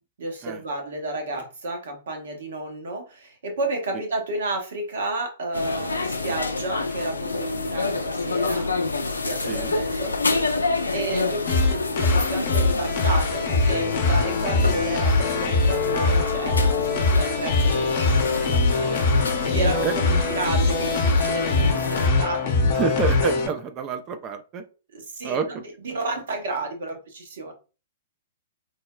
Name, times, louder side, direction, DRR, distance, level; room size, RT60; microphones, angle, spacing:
voice 1, 0.2-10.4 10.9-19.1 19.4-22.9 24.9-27.5, right 2 dB, 65° right, 3 dB, 0.9 m, -31 dB
sound 1, 5.5-22.1, left 3 dB, 90° left, 0.3 m, -28 dB
sound 2, 11.5-23.5, left 3 dB, 50° left, 0.7 m, -22 dB
voice 2, 22.7-24.6 25.2-25.6, right 6 dB, 30° right, 8 dB, 0.3 m, -28 dB
3.3 x 2.0 x 2.2 m, 0.33 s
hypercardioid pair, 115°, 0 cm